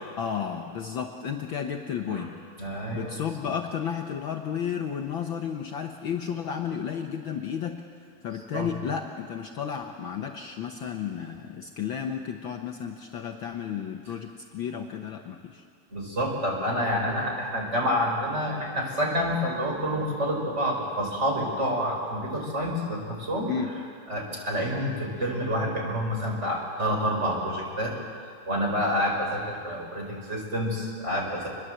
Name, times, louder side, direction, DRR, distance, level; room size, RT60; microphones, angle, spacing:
voice 1, 0.2-2.4 2.9-7.8 8.2-15.6 23.5-23.8, left 7 dB, 80° left, 3 dB, 1.1 m, -32 dB
voice 2, 2.6-3.2 8.5-8.7 15.9-23.5 24.1-27.9 28.5-31.5, equal, 20° right, -1 dB, 4.9 m, -28 dB
26.0 x 21.5 x 7.8 m, 2.2 s
omnidirectional pair, 3.7 m